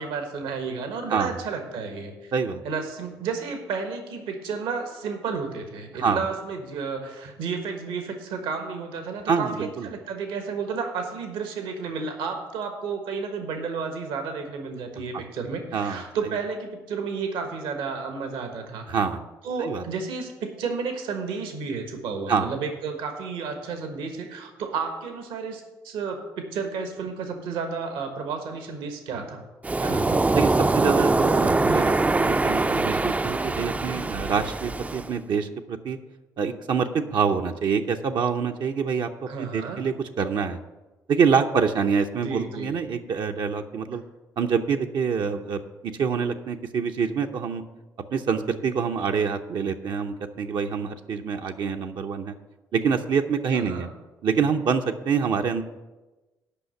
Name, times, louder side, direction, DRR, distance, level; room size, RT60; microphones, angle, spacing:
voice 1, 0.0-2.3 2.6-18.9 19.4-29.4 29.7-30.2 39.3-39.8 42.2-42.7 53.5-53.9, right 5 dB, 80° right, 5 dB, 1.4 m, -32 dB
voice 2, 1.1-1.4 2.3-2.6 6.0-6.2 9.3-9.9 15.1-15.2 15.7-16.0 18.9-19.2 19.6-19.8 22.3-22.5 30.3-36.0 36.4-39.1 39.4-40.6 41.1-44.0 44.4-47.6 48.1-52.3 52.7-53.9 54.2-55.6, right 6 dB, 60° right, 4 dB, 0.7 m, -26 dB
Waves surf, 29.6-35.1, right 2 dB, 15° right, 0.4 m, -23 dB
8.4 x 5.7 x 7.9 m, 1.1 s
hypercardioid pair, 55°, 9 cm